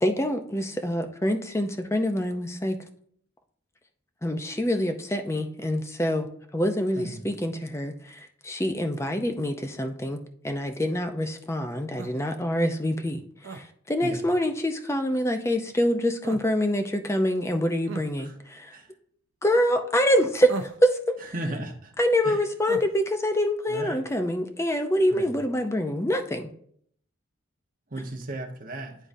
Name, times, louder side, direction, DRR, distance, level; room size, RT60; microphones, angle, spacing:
voice 1, 0.0-2.8 4.2-6.3 6.5-18.8 19.4-21.3 22.0-26.5, equal, 15° left, 6 dB, 0.6 m, -26 dB
sound 1, 12.0-12.2 13.4-13.6 16.2-16.5 17.9-18.1 20.5-20.9 22.7-22.9, right 4 dB, 80° right, 0.6 m, -36 dB
voice 2, 21.2-21.9 22.2-22.4 23.7-24.1 25.1-25.4 27.9-29.0, right 1 dB, 45° right, 3 dB, 1.1 m, -35 dB
11.0 x 3.7 x 2.7 m, 0.63 s
head